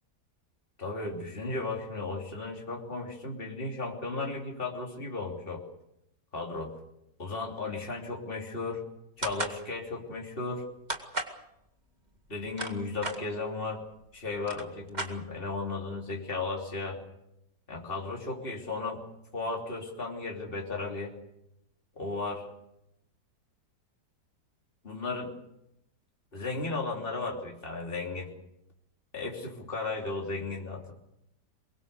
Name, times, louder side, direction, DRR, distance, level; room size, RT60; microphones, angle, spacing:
voice 1, 0.8-5.6 6.3-6.7 7.2-8.8 9.2-10.7 12.3-13.8 14.1-17.0 17.7-19.0 19.3-21.1 22.0-22.5 24.8-25.3 26.3-28.3 29.1-30.9, left 3 dB, 30° left, 0 dB, 3.5 m, -35 dB
sound 1, 9.2-9.6 10.9-11.4 12.3-13.2 14.0-14.1 14.4-15.6, right 2 dB, 25° right, 2.1 m, -35 dB
23.5 x 22.0 x 6.7 m, 0.83 s
omnidirectional pair, 1.8 m